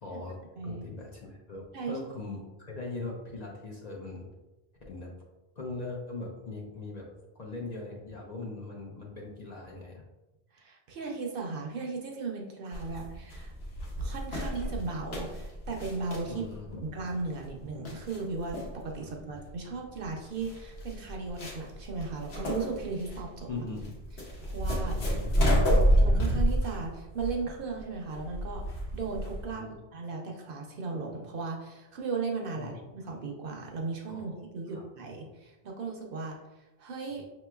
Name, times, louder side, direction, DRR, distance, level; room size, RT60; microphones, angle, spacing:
voice 1, 0.0-4.3 4.9-5.1 5.6-7.1 7.3-10.0 12.9-13.0 16.3-16.8 19.0-19.4 23.5-23.9 24.9-25.5 29.5-29.7 32.5-33.2 34.1-34.4 34.7-34.8 37.1-37.2, left 3 dB, 50° left, -1 dB, 0.6 m, -41 dB
voice 2, 10.5-13.5 14.0-16.4 16.8-23.5 24.4-25.0 25.4-37.3, right 4 dB, 60° right, 1 dB, 0.8 m, -36 dB
sound 1, 12.7-29.5, equal, 75° left, 1.2 m, -30 dB
5.7 x 2.9 x 2.2 m, 1.0 s
omnidirectional pair, 1.1 m